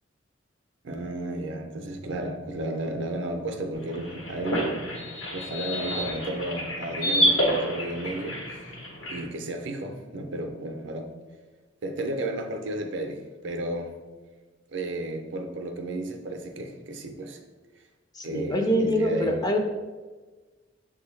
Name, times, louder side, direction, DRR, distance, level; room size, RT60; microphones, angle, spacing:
voice 1, 0.8-4.8 5.3-8.6 9.1-11.1 11.8-13.9 14.7-17.4 18.2-19.4, right 1 dB, 65° right, 4 dB, 0.5 m, -33 dB
sound 1, 3.7-9.2, equal, 85° left, 1.0 m, -28 dB
voice 2, 18.1-19.6, equal, 20° left, 3 dB, 0.4 m, -25 dB
6.7 x 2.3 x 3.1 m, 1.3 s
head